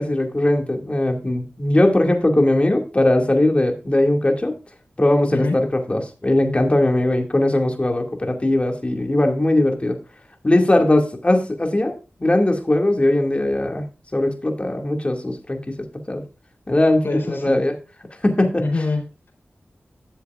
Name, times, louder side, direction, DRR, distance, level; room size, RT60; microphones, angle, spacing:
voice 1, 0.0-4.5 5.0-10.0 10.4-13.8 14.1-15.7 16.1-16.2 16.7-17.7 18.2-18.6, left 1 dB, 30° left, 3 dB, 2.2 m, -19 dB
voice 2, 17.0-17.6 18.6-19.3, left 3 dB, 70° left, 0 dB, 4.3 m, -25 dB
12.5 x 7.2 x 2.5 m, 0.32 s
cardioid pair, 45°, 4 cm